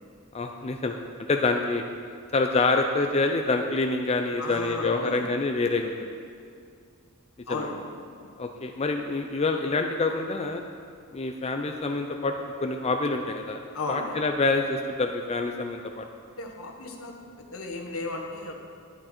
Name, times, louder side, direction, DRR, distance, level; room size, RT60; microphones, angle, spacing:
voice 1, 0.3-1.0 1.3-1.8 2.3-6.1 7.5-7.6 8.4-10.6 11.1-13.6 13.9-16.1, left 3 dB, 30° left, 4 dB, 0.5 m, -26 dB
voice 2, 4.4-5.3 7.5-7.8 8.2-8.3 13.7-14.1 16.4-18.6, left 3 dB, 75° left, 2 dB, 1.4 m, -35 dB
11.0 x 10.0 x 4.4 m, 2.3 s
head